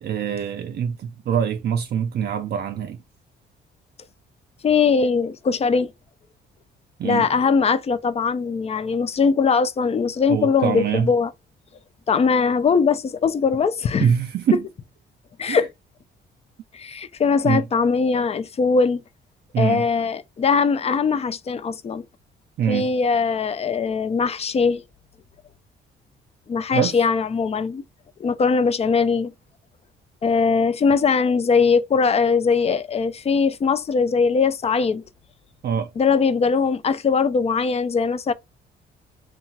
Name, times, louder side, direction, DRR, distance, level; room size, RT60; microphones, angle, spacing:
voice 1, 0.0-3.0 7.0-7.3 10.3-11.1 14.0-14.7 15.5-15.7 17.4-17.6 19.5-19.9 22.6-22.9 26.7-27.0 35.6-35.9, right 8 dB, 55° right, 0.4 m, -24 dB
voice 2, 4.6-5.9 7.0-11.3 12.1-14.1 15.4-15.7 16.7-19.0 19.6-22.0 22.7-24.8 26.5-27.8 28.2-29.3 30.2-35.0 36.0-38.3, left 5 dB, 30° left, 0.4 m, -21 dB
2.8 x 2.3 x 2.7 m
cardioid pair, 90°, 20 cm